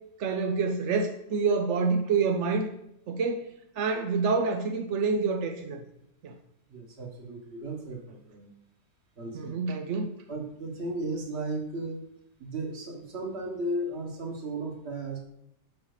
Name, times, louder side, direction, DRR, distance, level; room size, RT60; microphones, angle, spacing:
voice 1, 0.2-2.7 3.1-3.5 3.8-5.8 6.2-6.3 9.3-10.1, right 4 dB, 70° right, 4 dB, 0.7 m, -27 dB
voice 2, 6.7-8.5 9.2-9.5 10.3-12.0 12.4-15.2, right 2 dB, 40° right, 2 dB, 1.4 m, -35 dB
6.5 x 5.5 x 4.8 m, 0.76 s
omnidirectional pair, 1.9 m